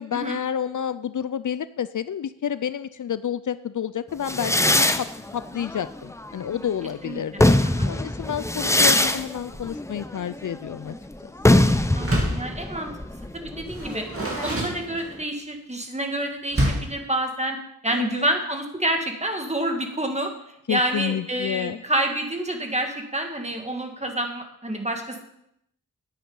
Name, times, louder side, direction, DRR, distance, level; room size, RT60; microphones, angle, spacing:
voice 1, 0.0-5.1 5.3-7.5 7.8-11.0 17.9-18.3 20.7-21.8, left 9 dB, 65° left, 14 dB, 0.5 m, -29 dB
sound 1, 4.3-6.7 7.2-14.7, left 1 dB, 10° left, 0.6 m, -23 dB
voice 2, 12.0-12.9 13.6-14.0 14.4-17.6 17.8-20.3 20.7-25.2, right 1 dB, 20° right, 4 dB, 1.7 m, -28 dB
Door, 12.0-12.5 13.7-15.3 16.5-17.0, right 1 dB, 40° right, 2.5 m, -27 dB
10.0 x 8.6 x 5.4 m, 0.78 s
wide cardioid pair, 95°, 33 cm